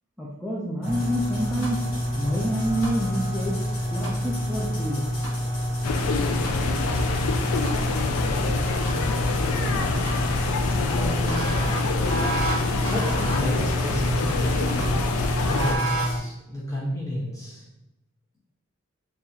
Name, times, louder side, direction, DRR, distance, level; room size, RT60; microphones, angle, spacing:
voice 1, 0.2-1.8 2.2-3.6 3.9-5.1, equal, ahead, -8 dB, 0.5 m, -28 dB
sound 1, 0.8-16.2, equal, 65° left, 1.2 m, -27 dB
sound 2, 5.8-15.8, left 4 dB, 90° left, 0.4 m, -26 dB
voice 2, 9.5-10.0 10.8-11.6 12.7-14.6 15.4-17.6, left 1 dB, 15° left, -7 dB, 1.2 m, -32 dB
3.9 x 2.8 x 2.8 m, 0.93 s
head